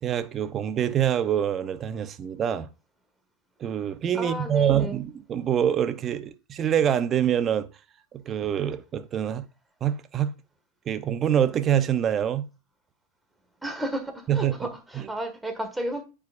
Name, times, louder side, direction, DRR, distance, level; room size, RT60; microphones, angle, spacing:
voice 1, 0.0-2.7 3.6-7.7 8.1-9.4 9.8-10.3 10.9-12.5 14.3-14.7 14.9-15.1, right 9 dB, 30° right, 0.7 m, -25 dB
voice 2, 4.1-5.0 13.6-16.0, right 1 dB, 5° right, 1.7 m, -32 dB
9.2 x 4.9 x 2.5 m
hypercardioid pair, 115°, 0 cm